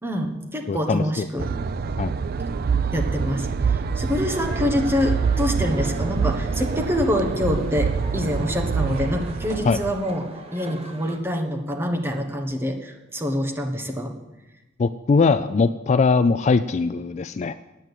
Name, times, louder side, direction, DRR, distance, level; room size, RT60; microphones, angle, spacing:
voice 1, 0.0-1.5 2.9-14.2, left 1 dB, 10° right, 3 dB, 1.3 m, -26 dB
voice 2, 0.7-1.3 2.0-2.1 9.6-9.8 14.8-17.6, left 4 dB, 35° left, 13 dB, 0.3 m, -21 dB
sound 1, 1.4-9.9, right 5 dB, 50° right, 0.4 m, -25 dB
sound 2, 4.3-11.2, right 2 dB, 30° right, 1.2 m, -41 dB
9.1 x 8.8 x 8.1 m, 1.0 s
head